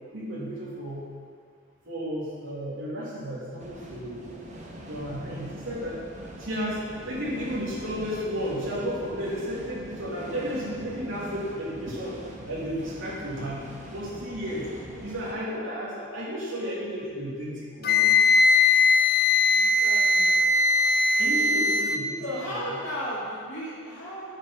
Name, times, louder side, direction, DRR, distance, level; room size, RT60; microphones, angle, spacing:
voice 1, 0.1-1.1 1.8-4.3 4.9-6.0 6.4-12.1 12.5-13.6 13.9-14.7 15.0-18.1 21.2-22.6, equal, 80° right, -8 dB, 2.7 m, -33 dB
sound 1, 3.6-15.3, equal, 35° right, 1.1 m, -42 dB
voice 2, 14.9-15.2 19.5-20.4 22.2-24.3, equal, 70° left, -11 dB, 2.5 m, -35 dB
Wind instrument woodwind instrument, 17.8-22.0, left 3 dB, 50° left, 0.5 m, -20 dB
9.0 x 6.7 x 5.9 m, 2.1 s
head